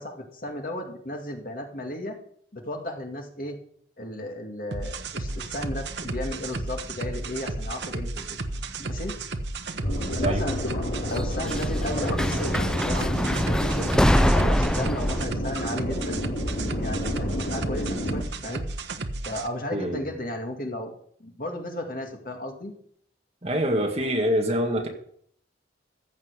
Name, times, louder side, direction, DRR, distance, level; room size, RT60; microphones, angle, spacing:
voice 1, 0.0-2.2 2.5-3.6 4.0-8.4 8.8-9.2 10.2-10.6 11.1-13.9 14.4-16.2 16.8-18.7 19.2-20.9 21.2-22.7, left 1 dB, 50° left, 2 dB, 2.1 m, -34 dB
sound 1, 4.7-19.5, right 2 dB, 70° right, 1.0 m, -33 dB
sound 2, 5.3-7.3 7.6-8.3 9.4-9.5 11.1-15.2, equal, 5° left, 0.4 m, -25 dB
sound 3, 9.8-18.2, left 1 dB, 70° left, 3.3 m, -30 dB
voice 2, 19.7-20.1 23.4-24.9, equal, 35° right, 2 dB, 2.1 m, -25 dB
15.0 x 5.7 x 8.3 m, 0.64 s
head